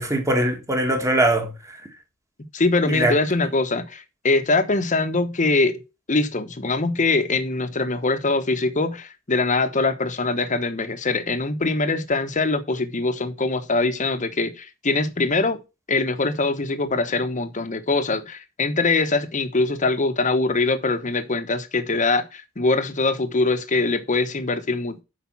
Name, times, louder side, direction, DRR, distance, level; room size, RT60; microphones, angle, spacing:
voice 1, 0.0-1.8 2.9-3.2, right 1 dB, 15° right, 1.8 m, -22 dB
voice 2, 2.5-5.8 6.1-15.6 15.9-25.0, left 3 dB, 40° left, 1.1 m, -23 dB
8.4 x 5.1 x 5.8 m
head